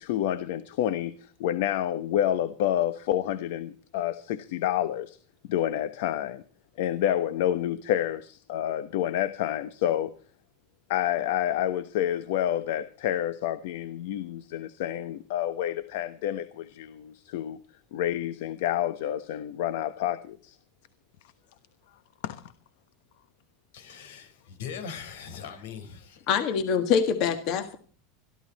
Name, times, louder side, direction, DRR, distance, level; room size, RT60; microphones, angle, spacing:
voice 1, 0.0-5.2 5.5-6.4 6.8-10.1 10.9-17.6 17.9-20.6 22.2-22.4, left 11 dB, 60° left, 1.1 m, -29 dB
voice 2, 23.7-26.2, left 7 dB, 85° left, 4.6 m, -40 dB
voice 3, 26.3-27.8, left 7 dB, 40° left, 1.6 m, -24 dB
22.0 x 13.5 x 4.2 m
supercardioid pair, 175°, 0 cm